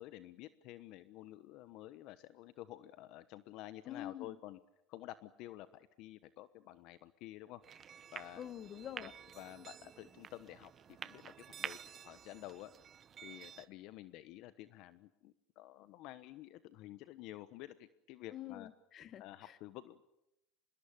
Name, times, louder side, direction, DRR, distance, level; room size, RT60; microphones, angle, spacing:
voice 1, 0.0-4.6 4.9-7.6 8.1-8.4 9.0-12.7 13.2-18.7 19.2-20.1, left 15 dB, 55° left, 14 dB, 1.1 m, -51 dB
voice 2, 3.8-4.4 8.4-9.1 18.3-19.6, left 11 dB, 40° left, 15 dB, 1.5 m, -47 dB
sound 1, 7.6-13.7, right 8 dB, 30° right, 1.1 m, -50 dB
25.5 x 21.5 x 8.8 m, 0.86 s
supercardioid pair, 125°, 0 cm